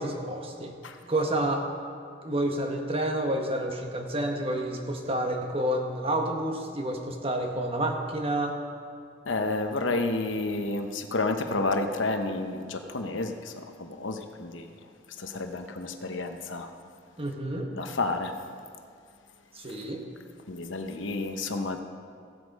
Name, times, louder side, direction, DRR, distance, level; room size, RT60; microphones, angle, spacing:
voice 1, 0.0-0.7 1.1-1.7 2.2-8.6 17.2-17.7 19.5-20.0, right 1 dB, 30° right, 3 dB, 1.1 m, -29 dB
voice 2, 9.3-14.7 15.2-16.7 17.7-18.4 20.5-21.8, left 2 dB, 80° left, 6 dB, 0.9 m, -30 dB
15.5 x 8.1 x 5.3 m, 2.2 s
head